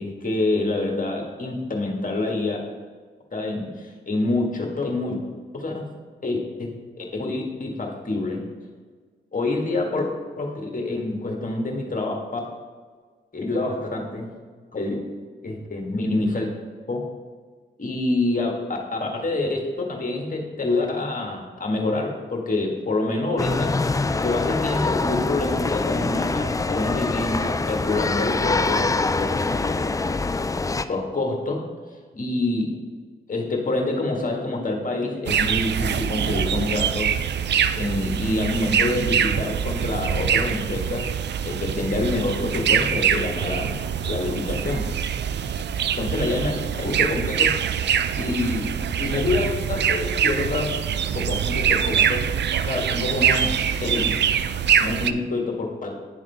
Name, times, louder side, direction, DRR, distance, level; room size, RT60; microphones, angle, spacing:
voice 1, 0.0-2.6 3.3-5.1 5.5-5.9 6.2-6.7 7.0-8.4 9.3-10.0 10.4-12.4 13.3-14.3 14.7-14.9 15.4-16.5 16.9-17.0 17.8-23.7 24.2-29.8 30.9-31.6 32.1-32.8 33.3-37.1 37.8-41.0 41.4-43.8 44.0-44.8 46.0-46.5 46.8-47.5 48.2-50.7 51.1-52.3 52.7-53.5 53.9-54.1 54.8-55.9, left 2 dB, 40° left, 0 dB, 1.6 m, -26 dB
sound 1, 23.4-30.8, left 3 dB, 15° left, 0.3 m, -24 dB
sound 2, 35.3-55.1, right 8 dB, 55° right, 0.4 m, -24 dB
10.5 x 3.6 x 3.5 m, 1.5 s
supercardioid pair, 45°, 21 cm